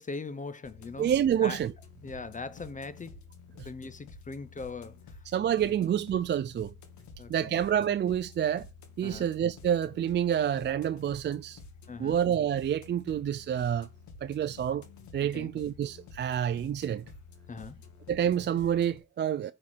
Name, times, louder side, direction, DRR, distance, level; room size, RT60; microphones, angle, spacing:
voice 1, 0.0-1.6 2.0-3.3 3.6-5.2 5.6-5.9 7.2-7.6 9.0-9.3 11.9-12.2 15.2-15.6 17.5-17.8, left 4 dB, 25° left, 0.7 m, -41 dB
sound 1, 0.6-19.0, left 4 dB, 70° left, 1.7 m, -50 dB
voice 2, 1.0-1.7 5.3-6.7 7.3-8.7 9.0-11.6 12.0-13.9 14.2-14.8 15.1-17.0 18.1-19.5, right 9 dB, 35° right, 0.4 m, -28 dB
9.2 x 4.4 x 4.4 m
cardioid pair, 90°, 30 cm